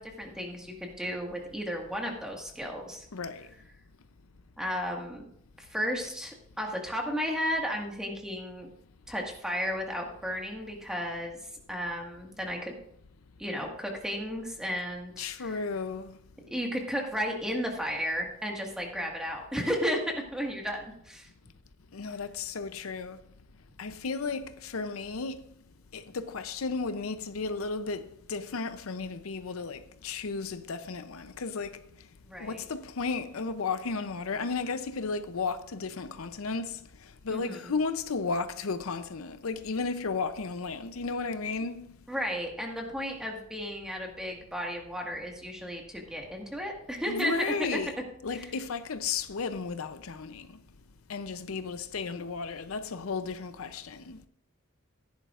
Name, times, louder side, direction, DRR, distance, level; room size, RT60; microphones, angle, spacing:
voice 1, 0.0-3.1 4.6-5.3 5.6-8.7 9.1-11.4 11.7-12.8 13.4-15.6 16.5-21.3 32.2-32.6 37.3-37.7 42.1-47.8 48.3-48.5, equal, 5° right, 1.7 m, -34 dB
voice 2, 3.1-3.5 15.2-16.2 21.9-23.2 23.8-25.4 25.9-31.8 32.4-36.8 37.2-42.0 47.0-50.5 51.1-54.3, left 4 dB, 80° left, 0.6 m, -34 dB
15.5 x 10.5 x 2.5 m
head